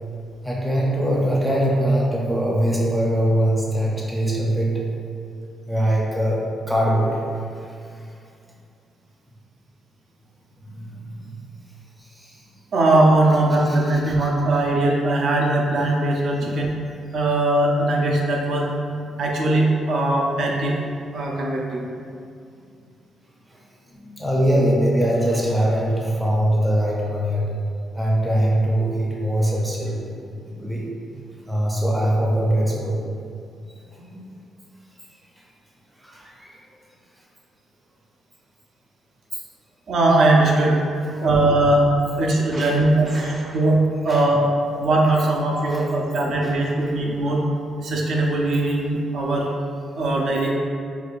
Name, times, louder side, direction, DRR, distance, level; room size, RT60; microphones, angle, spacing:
voice 1, 0.4-4.8 5.7-8.1 10.6-11.4 12.0-12.4 13.7-14.3 16.4-16.6 19.1-19.2 23.5-23.6 23.9-27.6 27.9-30.1 30.6-30.9 31.5-33.1 33.9-34.2 36.0-36.6 39.3-39.4 41.1-41.3 42.5-42.8 43.0-43.6 44.1-44.2 45.7-45.9 46.4-46.9, right 1 dB, 5° right, -4 dB, 0.5 m, -23 dB
voice 2, 12.7-16.7 17.1-18.7 19.2-20.8 21.1-21.8 30.5-30.7 39.9-40.8 41.2-44.5 44.8-47.4 47.8-49.5 50.0-50.5, right 2 dB, 60° right, -2 dB, 0.4 m, -20 dB
4.6 x 2.4 x 2.4 m, 2.4 s
cardioid pair, 160°, 0 cm